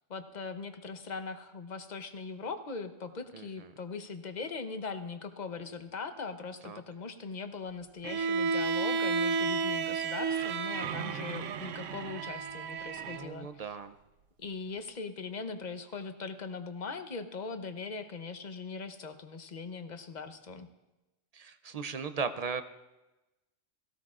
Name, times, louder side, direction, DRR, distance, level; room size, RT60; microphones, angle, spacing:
voice 1, 0.1-13.8 14.4-20.7, left 4 dB, 40° left, 8 dB, 0.8 m, -40 dB
Bowed string instrument, 8.0-13.3, right 5 dB, 85° right, 1.0 m, -32 dB
voice 2, 13.0-13.9 21.3-22.6, right 5 dB, 45° right, 10 dB, 0.5 m, -37 dB
17.5 x 15.5 x 2.5 m, 1.0 s
omnidirectional pair, 1.2 m